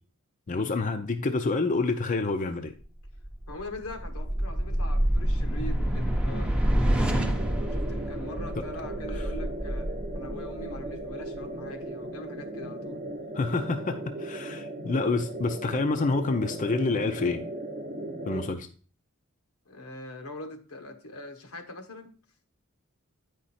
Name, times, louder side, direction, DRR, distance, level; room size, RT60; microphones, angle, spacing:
voice 1, 0.5-2.7 13.3-17.5 18.2-18.7, left 3 dB, 35° left, 0.5 m, -28 dB
sound 1, 3.0-11.4, equal, 5° right, 0.7 m, -28 dB
voice 2, 3.5-6.5 7.6-13.1 19.7-22.1, left 1 dB, 80° left, 1.1 m, -42 dB
sound 2, 7.1-18.5, right 1 dB, 35° right, 0.8 m, -37 dB
9.1 x 5.0 x 4.2 m
head